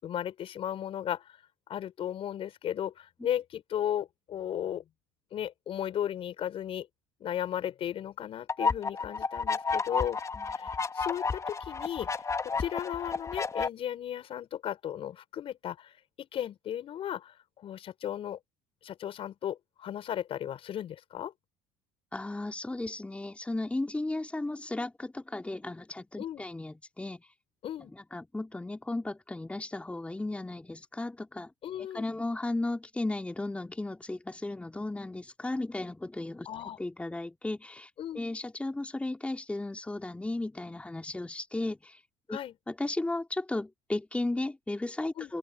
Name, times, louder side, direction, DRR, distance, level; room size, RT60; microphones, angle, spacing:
voice 1, 0.0-1.2 1.7-4.8 5.3-6.9 7.2-10.2 10.5-12.1 12.4-15.9 16.2-18.4 18.8-21.3 26.2-26.4 27.6-27.9 31.6-32.1 36.5-36.8 38.0-38.3 42.3-42.5 45.2-45.3, left 10 dB, 55° left, 5.6 m, -35 dB
sound 1, 8.5-13.7, left 4 dB, 25° left, 1.6 m, -31 dB
voice 2, 22.1-27.3 27.9-31.5 31.8-42.0 42.3-42.4 42.7-45.4, left 2 dB, 10° left, 2.7 m, -35 dB
open air
supercardioid pair, 80°, 12 cm